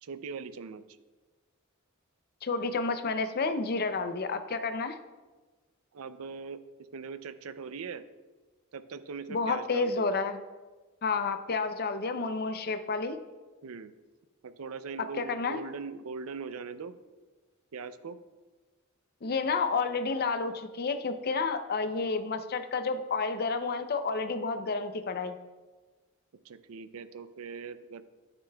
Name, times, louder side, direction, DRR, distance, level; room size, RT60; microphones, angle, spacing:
voice 1, 0.0-0.8 5.9-6.6 6.9-8.0 8.7-10.1 13.6-13.9 14.4-17.0 17.7-18.2 26.4-28.0, right 5 dB, 80° right, 13 dB, 0.5 m, -41 dB
voice 2, 2.4-5.0 9.3-10.4 11.0-13.2 15.2-15.6 19.2-25.4, left 4 dB, 45° left, 9 dB, 0.5 m, -30 dB
11.0 x 9.7 x 2.3 m, 1.3 s
head